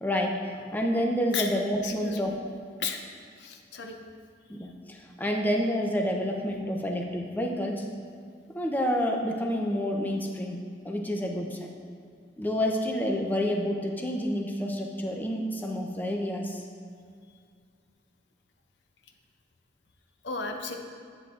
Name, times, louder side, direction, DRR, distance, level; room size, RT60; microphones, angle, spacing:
voice 1, 0.0-2.5 4.5-7.9 8.5-11.7 12.4-16.7, equal, 10° left, 1 dB, 0.5 m, -29 dB
voice 2, 1.8-2.4 2.8-3.0 3.4-4.0 20.2-20.8, left 5 dB, 80° left, 3 dB, 0.7 m, -34 dB
9.7 x 8.4 x 2.4 m, 2.2 s
head